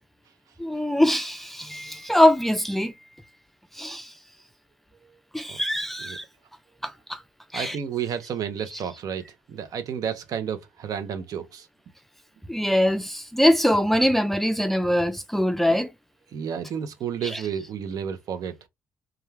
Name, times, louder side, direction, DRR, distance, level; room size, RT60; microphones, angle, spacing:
voice 1, 0.6-2.9 3.7-4.1 5.3-6.2 6.8-7.2 7.5-7.8 8.7-8.8 12.5-15.9 17.2-17.4, left 1 dB, 5° left, 0.4 m, -23 dB
voice 2, 7.5-11.7 15.7-15.8 16.3-18.7, right 8 dB, 65° right, 0.6 m, -31 dB
2.3 x 2.2 x 3.2 m
supercardioid pair, 55°, 7 cm